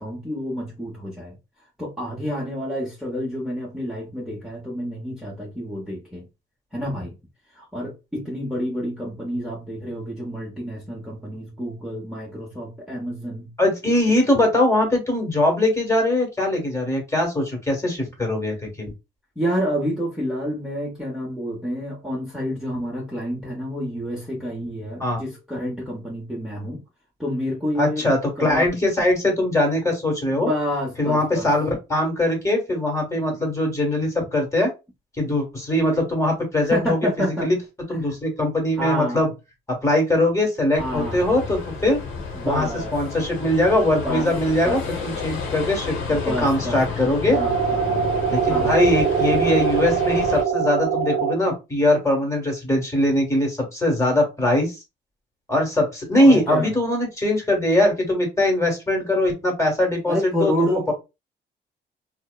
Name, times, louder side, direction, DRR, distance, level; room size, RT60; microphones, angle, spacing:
voice 1, 0.0-1.3 1.8-6.3 6.7-7.1 7.5-13.5 19.4-26.8 27.2-28.1 28.4-28.7 30.3-31.5 36.6-37.5 38.0-38.2 38.8-39.3 40.8-41.2 42.3-43.0 44.0-44.3 44.6-44.8 46.1-46.8 47.3-48.1 48.5-48.8 56.1-56.7 60.1-60.9, equal, ahead, 0.9 m, -29 dB
voice 2, 13.6-18.9 25.0-25.2 27.8-30.5 31.0-34.7 35.2-37.6 37.9-39.3 39.8-42.0 42.4-42.7 42.9-47.4 48.3-54.7 55.5-60.9, left 1 dB, 15° left, 1.3 m, -21 dB
sound 1, 40.7-50.4, left 4 dB, 90° left, 0.9 m, -31 dB
sound 2, 47.3-51.3, right 8 dB, 55° right, 0.5 m, -22 dB
2.8 x 2.0 x 2.2 m
cardioid pair, 90°, 20 cm